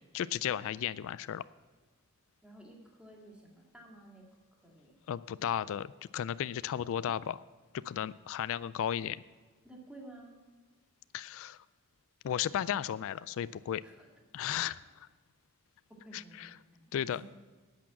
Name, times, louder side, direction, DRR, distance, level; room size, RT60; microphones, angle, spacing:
voice 1, 0.1-1.4 5.1-7.4 7.7-9.2 11.1-11.6 12.2-13.8 14.3-15.1 16.1-16.5 16.9-17.2, left 9 dB, 60° left, 17 dB, 0.3 m, -34 dB
voice 2, 2.4-4.9 9.6-10.4 13.8-14.1 16.0-16.8 17.1-17.2, right 1 dB, 5° right, 0 dB, 2.1 m, -53 dB
10.5 x 8.6 x 7.2 m, 1.4 s
head